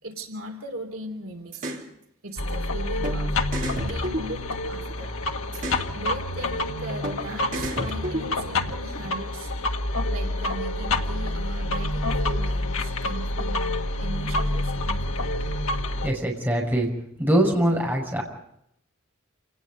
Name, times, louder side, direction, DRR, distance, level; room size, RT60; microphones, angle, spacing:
voice 1, 0.0-1.7 2.2-3.3 3.8-4.4 4.7-5.1 5.9-9.5 10.1-13.6 14.0-15.3, right 1 dB, 65° right, 3 dB, 3.2 m, -38 dB
sound 1, 1.5-1.8 3.0-3.2 3.5-4.9 5.5-5.9 7.0-7.2 7.5-8.6, right 1 dB, 40° right, 3.5 m, -31 dB
sound 2, 2.4-16.1, left 2 dB, 75° left, 1.7 m, -28 dB
voice 2, 16.0-16.9 17.2-18.2, right 1 dB, 10° right, -1 dB, 6.0 m, -22 dB
28.0 x 19.0 x 5.4 m, 0.78 s
head